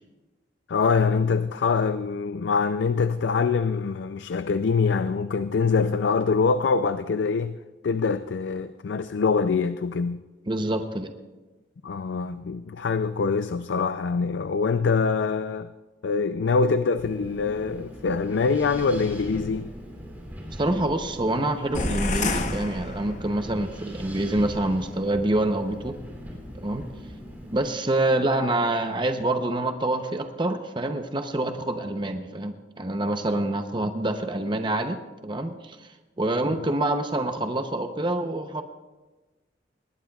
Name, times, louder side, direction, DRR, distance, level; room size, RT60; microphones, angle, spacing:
voice 1, 0.7-7.6 7.8-10.2 11.8-15.7 16.0-19.7, left 5 dB, 75° left, 0.4 m, -24 dB
voice 2, 10.5-11.1 20.6-26.0 26.5-26.9 27.5-35.0 35.2-35.9 36.2-38.6, right 1 dB, 25° right, 0.7 m, -26 dB
Wind, 17.0-27.7, equal, 10° right, 3.0 m, -40 dB
sound 1, 21.7-23.6, left 2 dB, 40° left, 1.0 m, -28 dB
20.5 x 19.5 x 2.4 m
head